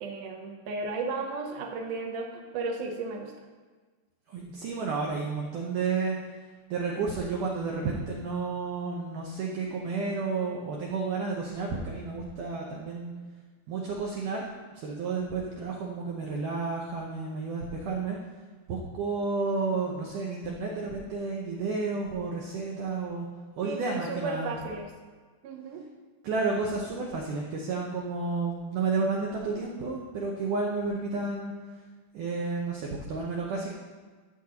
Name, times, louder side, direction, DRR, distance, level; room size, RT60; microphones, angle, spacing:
voice 1, 0.0-3.3 23.6-24.9 25.4-25.8, right 3 dB, 90° right, 3 dB, 1.8 m, -34 dB
voice 2, 4.3-6.2 6.7-13.1 13.7-14.5 14.8-18.2 18.7-23.3 23.6-24.6 26.2-31.5 32.1-33.7, right 4 dB, 75° right, -2 dB, 1.9 m, -31 dB
14.0 x 7.9 x 2.9 m, 1.4 s
omnidirectional pair, 4.7 m